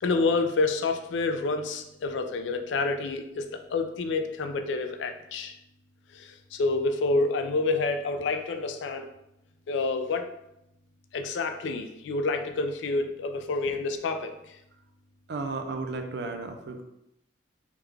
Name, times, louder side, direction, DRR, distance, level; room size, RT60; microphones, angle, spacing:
voice 1, 0.0-5.6 6.1-9.1 9.7-10.3 11.1-14.6, left 3 dB, 75° left, 6 dB, 0.3 m, -28 dB
voice 2, 15.3-16.8, right 3 dB, 60° right, 5 dB, 0.4 m, -34 dB
3.5 x 2.3 x 3.3 m, 0.83 s
head